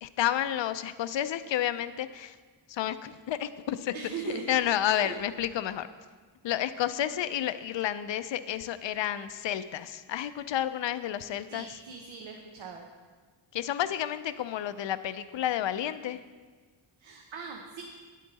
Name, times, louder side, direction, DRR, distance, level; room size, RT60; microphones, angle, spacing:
voice 1, 0.0-2.4 2.7-3.9 4.5-5.9 6.4-11.7 13.5-16.2, left 11 dB, 75° left, 13 dB, 0.5 m, -30 dB
voice 2, 3.9-4.6 4.9-5.2 11.5-12.8 17.0-17.8, right 5 dB, 85° right, 2 dB, 0.9 m, -40 dB
10.0 x 8.3 x 4.0 m, 1.5 s
wide cardioid pair, 140°, 45 cm